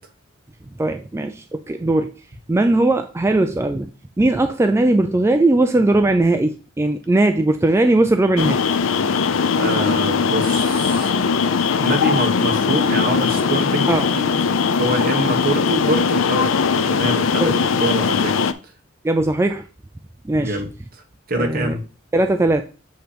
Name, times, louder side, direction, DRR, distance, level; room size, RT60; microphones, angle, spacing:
voice 1, 0.8-2.1 2.5-3.9 4.2-8.6 9.1-9.2 13.9-14.0 17.4-17.6 19.0-19.7 20.2-20.6 21.3-21.7 22.1-22.6, right 2 dB, 15° right, 6 dB, 0.3 m, -18 dB
sound 1, 8.4-18.5, left 5 dB, 75° left, 0.5 m, -19 dB
voice 2, 9.5-11.1 11.8-14.3 14.8-18.4 20.4-21.0 21.3-21.8, right 1 dB, 50° right, 3 dB, 1.3 m, -25 dB
7.9 x 3.0 x 5.0 m, 0.36 s
head